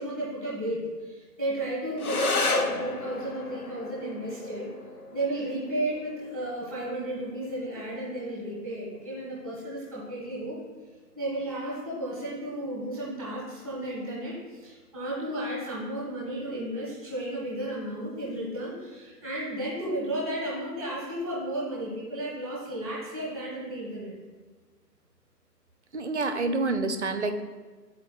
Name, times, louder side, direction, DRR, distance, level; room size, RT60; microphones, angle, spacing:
voice 1, 0.0-4.7 5.1-10.6 11.1-14.4 14.6-24.1, right 1 dB, ahead, -6 dB, 1.1 m, -33 dB
sound 1, 2.0-11.0, left 3 dB, 60° left, 0.7 m, -34 dB
voice 2, 25.9-27.4, right 3 dB, 45° right, 9 dB, 0.4 m, -28 dB
11.5 x 4.3 x 2.3 m, 1.4 s
figure-of-eight pair, 145°, 49 cm